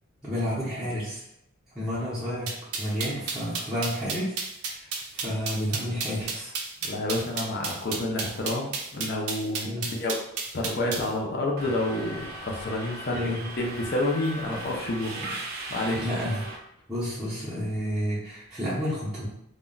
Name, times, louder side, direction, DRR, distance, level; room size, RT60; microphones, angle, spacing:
voice 1, 0.2-1.2 1.7-4.4 4.6-6.5 9.6-10.0 13.1-13.5 15.2-15.3 16.0-16.4 16.9-19.3, equal, 5° right, -12 dB, 0.6 m, -31 dB
sound 1, 2.5-11.1, right 5 dB, 90° right, 0.5 m, -32 dB
voice 2, 6.8-10.2 10.5-15.2 15.7-16.2, left 1 dB, 45° left, 0 dB, 0.4 m, -29 dB
Subway metro underground, 11.6-16.6, right 2 dB, 45° right, 0.5 m, -38 dB
2.2 x 2.1 x 3.7 m, 0.79 s
head